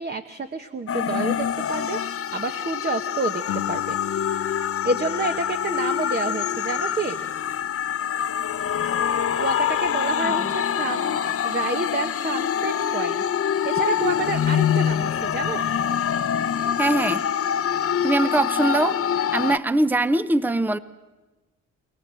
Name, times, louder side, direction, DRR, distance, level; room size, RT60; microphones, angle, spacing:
voice 1, 0.0-3.4 3.7-4.0 4.8-7.2 9.4-15.6, right 3 dB, 30° right, 1.2 m, -29 dB
sound 1, 0.9-19.6, left 9 dB, 50° left, 0.9 m, -25 dB
Guitar, 3.5-8.8, left 13 dB, 85° left, 0.9 m, -39 dB
voice 2, 10.2-10.5 16.8-17.3 18.0-19.0 19.3-20.8, right 2 dB, 5° right, 0.7 m, -22 dB
28.0 x 19.0 x 7.7 m
cardioid pair, 90°, 30 cm